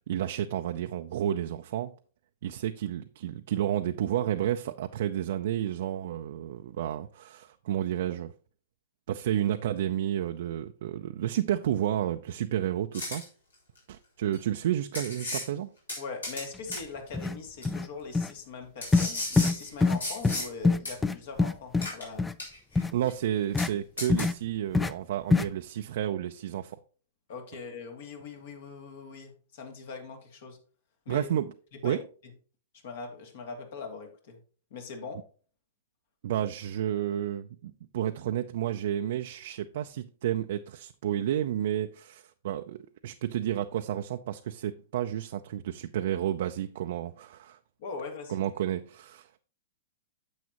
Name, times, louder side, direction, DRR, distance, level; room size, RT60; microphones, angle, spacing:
voice 1, 0.1-1.9 2.4-8.3 9.1-13.2 13.9-15.7 22.9-26.8 31.1-31.5 31.8-32.0 36.2-47.6 48.3-49.4, right 11 dB, 60° right, 0.5 m, -31 dB
sound 1, 12.9-13.2 14.3-14.4 14.9-15.5 15.9-16.5 16.7-16.8 17.6-17.7 18.8-20.5 20.9-21.0 21.8-22.1 22.4-22.8 23.1-23.2 23.6-23.7 24.0-24.3, left 2 dB, 85° left, 4.3 m, -35 dB
voice 2, 16.0-22.3 27.3-30.6 31.1-31.3 31.8-32.0 32.8-34.4 34.7-35.2 47.8-48.4, left 4 dB, 60° left, 2.2 m, -41 dB
sound 2, 16.7-16.8 17.1-17.4 17.6-17.9 18.1-18.3 18.9-19.1 19.4-19.5 19.8-20.0 20.2-20.4 20.6-21.9 22.2-22.3 22.7-22.9 23.5-23.7 24.1-24.3 24.7-24.9 25.3-25.5, left 3 dB, 10° left, 0.4 m, -24 dB
9.5 x 7.1 x 2.9 m
hypercardioid pair, 110°, 0 cm